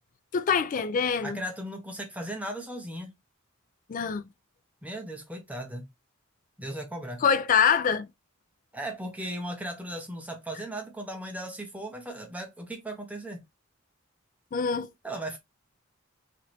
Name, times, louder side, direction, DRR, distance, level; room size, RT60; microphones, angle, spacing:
voice 1, 0.3-1.4 3.9-4.2 7.2-8.1 14.5-14.9, left 6 dB, 40° left, 0.3 m, -24 dB
voice 2, 1.2-3.1 4.8-5.9 6.6-7.2 8.7-13.4 15.0-15.4, right 1 dB, 5° right, 0.6 m, -37 dB
3.0 x 2.5 x 3.0 m
head